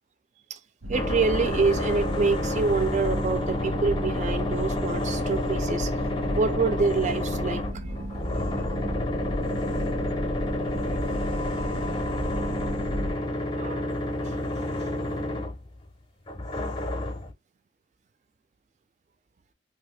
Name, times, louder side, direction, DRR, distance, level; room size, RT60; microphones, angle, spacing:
sound 1, 0.8-13.1, equal, 80° right, 1.0 m, -33 dB
sound 2, 0.9-15.9 16.3-17.3, left 1 dB, 25° left, 0.6 m, -30 dB
voice 1, 0.9-5.9 6.3-8.1 8.5-8.8 11.7-11.8 13.6-13.9 14.2-15.0, right 4 dB, 35° right, 0.3 m, -27 dB
2.8 x 2.5 x 3.2 m
head